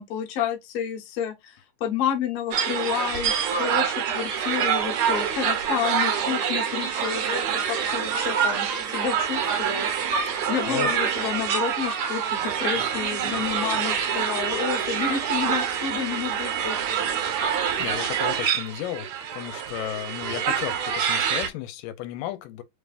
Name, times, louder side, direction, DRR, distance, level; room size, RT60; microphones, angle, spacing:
voice 1, 0.0-9.9 10.5-16.8, left 8 dB, 60° left, 1.6 m, -30 dB
sound 1, 2.5-21.5, right 8 dB, 65° right, 2.0 m, -26 dB
voice 2, 10.3-10.9 17.8-22.6, left 13 dB, 85° left, 2.2 m, -34 dB
5.0 x 3.4 x 2.4 m
omnidirectional pair, 3.8 m